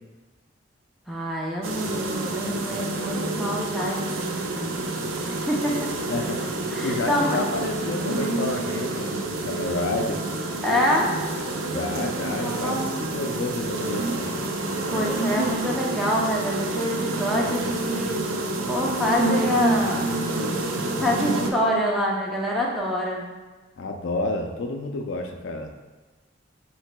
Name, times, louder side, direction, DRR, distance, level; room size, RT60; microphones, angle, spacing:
voice 1, 1.1-4.8 5.2-5.9 6.5-7.4 10.6-11.1 12.4-13.0 14.9-18.3 18.7-20.1 21.0-23.2, equal, ahead, -4 dB, 0.5 m, -26 dB
sound 1, 1.6-21.5, right 2 dB, 85° right, 0.5 m, -28 dB
voice 2, 6.1-6.4 6.8-10.2 11.7-12.9 13.1-14.4 23.8-25.7, left 2 dB, 70° left, 4 dB, 0.4 m, -30 dB
7.4 x 3.2 x 2.2 m, 1.2 s
head